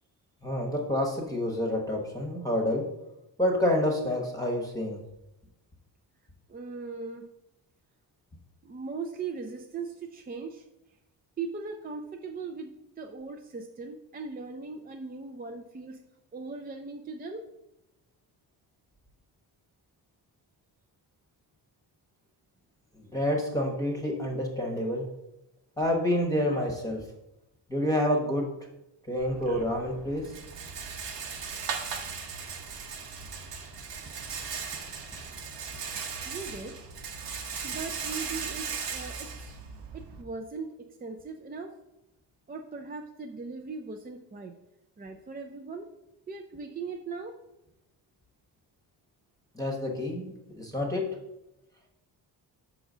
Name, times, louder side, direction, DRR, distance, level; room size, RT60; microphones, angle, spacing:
voice 1, 0.4-2.9 3.4-5.0 22.9-25.1 25.8-27.1 27.7-28.5 29.0-30.4 49.5-51.2, left 1 dB, 10° left, 0 dB, 1.0 m, -28 dB
voice 2, 6.5-7.3 8.6-10.6 11.4-16.0 16.3-17.5 36.3-36.9 37.6-39.6 39.9-41.7 42.5-44.5 45.0-45.9 46.3-47.3, right 4 dB, 25° right, 3 dB, 0.4 m, -39 dB
Rattle, 29.2-40.2, right 6 dB, 80° right, 1.2 m, -38 dB
5.9 x 4.0 x 6.1 m, 0.90 s
wide cardioid pair, 155°, 42 cm